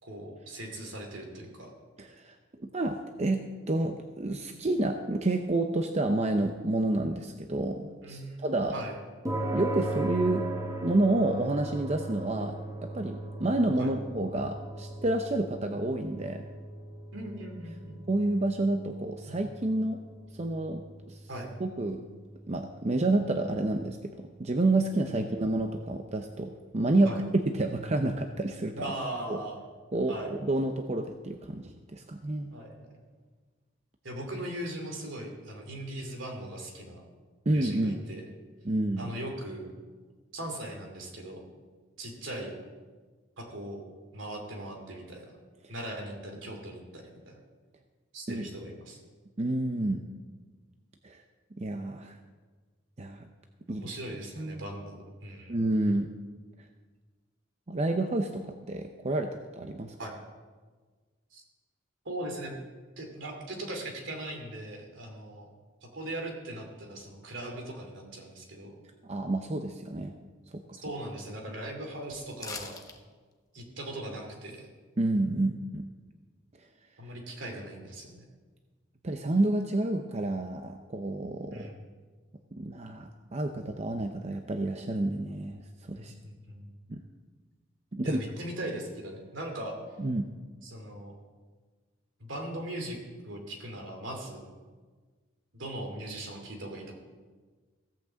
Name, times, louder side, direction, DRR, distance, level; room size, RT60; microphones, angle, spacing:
voice 1, 0.0-1.7 8.0-8.5 8.7-9.0 13.8-13.9 17.1-18.0 19.3-19.4 21.3-21.5 27.0-27.2 28.7-29.6 30.1-30.3 32.5-33.0 34.0-37.0 37.5-38.2 39.0-39.7 40.3-41.4 42.0-42.6 43.4-43.8 44.1-45.3 45.7-47.4 48.1-49.0 53.7-55.6 60.0-60.2 61.3-61.4 62.0-62.6 63.0-65.5 65.8-68.7 70.8-72.8 73.5-74.7 77.0-78.2 81.5-81.8 85.9-86.7 88.0-89.8 90.6-91.1 92.2-93.0 93.2-94.4 95.5-97.0, right 1 dB, 75° right, 2 dB, 2.7 m, -39 dB
voice 2, 2.0-8.7 9.5-10.5 10.8-16.5 18.1-20.0 20.3-21.2 21.6-22.1 22.5-28.8 29.3-29.4 29.9-32.5 37.5-38.0 38.6-39.1 48.3-48.4 49.4-50.0 51.0-51.2 51.6-52.2 53.0-53.3 53.7-53.9 54.4-54.6 55.5-56.1 57.7-59.9 69.1-70.1 70.5-70.8 75.0-75.8 79.0-81.7 82.5-85.6 85.9-86.1 86.9-87.0 87.9-88.2 90.0-90.3, right 2 dB, 35° right, 5 dB, 0.6 m, -29 dB
sound 1, 9.2-25.8, right 1 dB, 20° right, 1.3 m, -39 dB
sound 2, 72.4-73.0 73.3-73.4, left 4 dB, 20° left, 1.0 m, -40 dB
16.5 x 6.0 x 7.4 m, 1.4 s
head